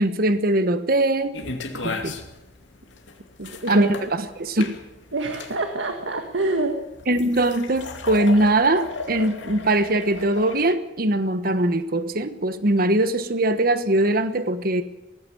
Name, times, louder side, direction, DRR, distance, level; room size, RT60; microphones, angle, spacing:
voice 1, 0.0-1.4 1.8-2.2 3.7-3.9 4.4-4.8 7.1-14.8, right 1 dB, 50° right, 11 dB, 1.2 m, -21 dB
sound 1, 1.3-10.7, left 3 dB, 80° left, 2.5 m, -35 dB
voice 2, 3.4-3.9 5.1-6.8, right 2 dB, 85° right, 5 dB, 1.8 m, -26 dB
18.5 x 15.5 x 9.4 m, 1.0 s
head